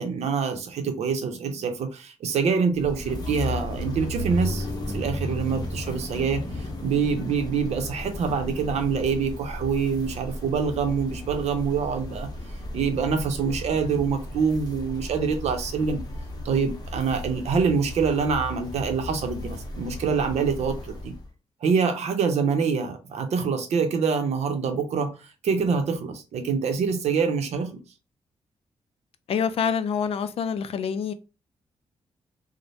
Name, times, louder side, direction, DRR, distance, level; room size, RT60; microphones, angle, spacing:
voice 1, 0.0-12.3 12.7-16.0 16.4-21.1 21.6-25.1 25.4-27.7, right 5 dB, 80° right, 0.6 m, -25 dB
sound 1, 2.7-21.3, left 1 dB, 35° left, 0.8 m, -34 dB
voice 2, 29.3-31.1, left 7 dB, 60° left, 0.3 m, -26 dB
3.1 x 2.1 x 2.6 m
cardioid pair, 100°, 11 cm